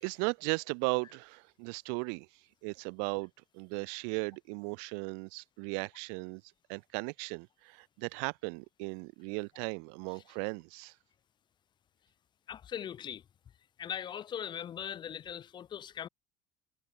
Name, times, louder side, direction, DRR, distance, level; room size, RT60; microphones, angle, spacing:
voice 1, 0.0-2.3 2.6-6.4 6.7-10.9, right 40 dB or more, 75° right, 1.2 m, -36 dB
voice 2, 12.5-13.2 13.8-16.1, left 9 dB, 25° left, 2.6 m, -40 dB
cardioid pair, 180°, 17 cm